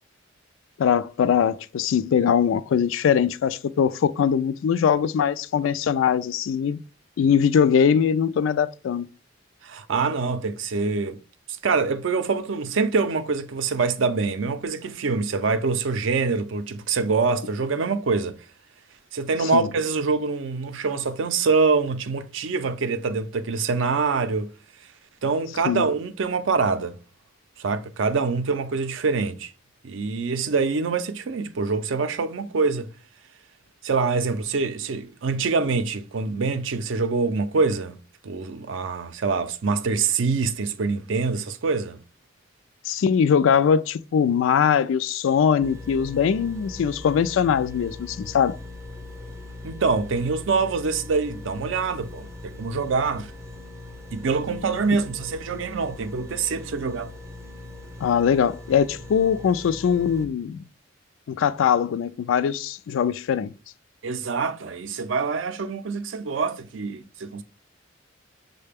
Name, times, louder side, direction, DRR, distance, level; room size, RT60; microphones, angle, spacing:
voice 1, 0.8-6.8 7.2-9.1 19.5-19.7 25.7-25.8 42.9-48.6 58.0-60.6 61.3-63.5, left 7 dB, 75° left, 0.3 m, -21 dB
voice 2, 9.6-11.2 11.5-18.4 19.1-24.5 25.2-27.0 27.6-29.5 29.8-32.9 33.8-42.0 49.6-53.3 54.1-57.1 64.0-67.4, right 4 dB, 70° right, 0.5 m, -25 dB
sound 1, 45.6-60.3, left 2 dB, 15° right, 0.4 m, -40 dB
6.4 x 2.2 x 3.4 m
head